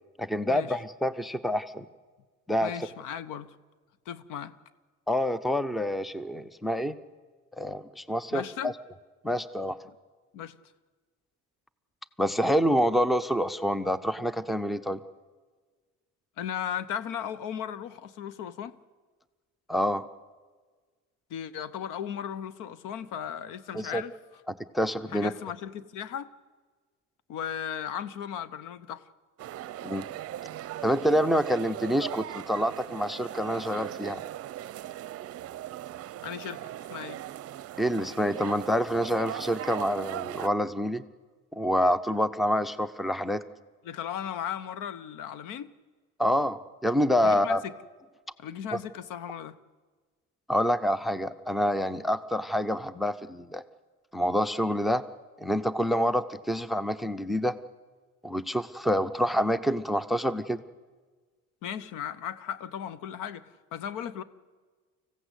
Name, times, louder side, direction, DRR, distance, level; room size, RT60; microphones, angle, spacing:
voice 1, 0.2-1.9 2.5-2.7 5.1-7.0 7.6-8.7 9.2-9.8 12.2-15.0 19.7-20.1 23.7-24.0 24.7-25.3 29.8-30.1 30.8-34.2 37.8-41.0 41.5-43.4 46.2-47.6 48.7-48.8 50.5-53.6 54.1-55.0 55.4-57.6 58.2-60.6, equal, ahead, 16 dB, 0.5 m, -27 dB
voice 2, 2.6-3.6 4.1-4.5 8.3-8.7 9.9-10.0 10.3-10.5 16.4-18.8 21.3-24.2 25.1-26.3 27.3-29.1 36.2-37.2 43.8-45.7 47.2-47.7 48.4-49.6 61.6-64.2, left 9 dB, 80° left, 16 dB, 1.0 m, -36 dB
sound 1, 29.4-40.5, right 13 dB, 50° right, 0.6 m, -39 dB
25.0 x 15.5 x 8.2 m, 1.4 s
cardioid pair, 140°, 31 cm